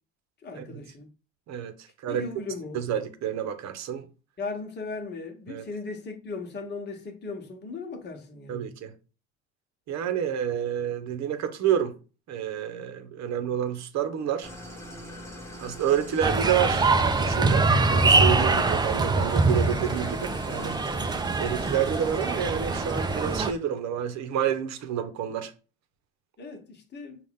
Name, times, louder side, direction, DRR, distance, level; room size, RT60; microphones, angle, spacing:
voice 1, 0.4-1.1 2.1-2.8 4.4-8.7 26.4-27.2, left 3 dB, 30° left, 1.2 m, -37 dB
voice 2, 2.7-4.1 5.5-5.7 8.5-8.9 9.9-12.0 12.3-14.5 15.6-20.8 21.4-25.5, right 9 dB, 55° right, 0.8 m, -29 dB
Idling, 14.4-23.6, left 1 dB, 10° left, 1.2 m, -42 dB
sound 1, 16.2-23.5, right 3 dB, 15° right, 0.5 m, -24 dB
5.4 x 2.5 x 3.6 m
supercardioid pair, 80°, 32 cm